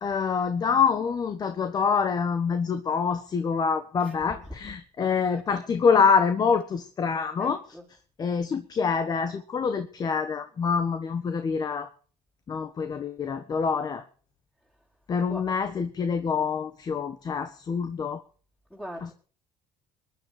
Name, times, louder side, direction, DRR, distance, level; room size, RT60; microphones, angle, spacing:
voice 1, 0.0-7.6 8.2-11.9 12.5-14.0 15.1-18.2 19.0-19.1, left 6 dB, 35° left, 1.5 m, -26 dB
voice 2, 4.0-5.4 7.4-7.9 15.3-15.5 18.7-19.1, equal, 10° left, 4.6 m, -42 dB
21.5 x 10.5 x 5.0 m
supercardioid pair, 100°, 11 cm